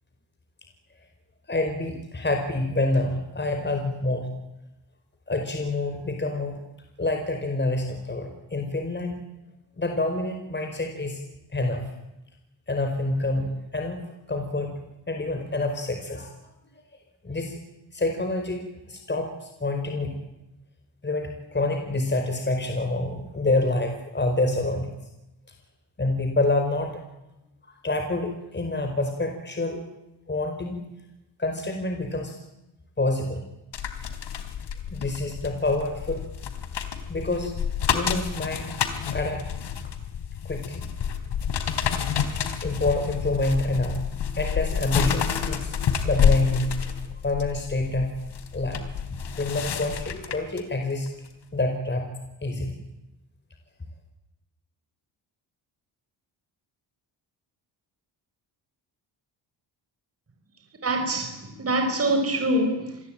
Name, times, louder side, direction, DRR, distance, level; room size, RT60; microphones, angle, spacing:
voice 1, 1.5-4.3 5.3-6.6 7.0-9.2 9.8-11.2 11.5-11.9 12.7-14.0 14.3-14.7 15.1-16.3 17.2-17.6 17.9-18.6 18.9-20.1 21.0-24.9 26.0-27.0 27.8-29.8 30.3-30.8 31.4-32.4 33.0-33.4 34.9-36.2 37.1-37.5 37.9-38.7 39.1-39.4 40.4-40.8 42.6-44.0 44.4-45.8 46.0-46.9 47.2-48.2 48.5-48.8 49.1-51.1 51.5-52.1 52.4-52.8, left 2 dB, 25° left, 5 dB, 5.0 m, -27 dB
sound 1, 33.7-50.6 51.1-51.3, left 8 dB, 70° left, 3.6 m, -29 dB
voice 2, 60.8-63.0, right 1 dB, 30° right, 5 dB, 5.1 m, -25 dB
27.5 x 21.0 x 9.1 m, 0.94 s
cardioid pair, 90°, 44 cm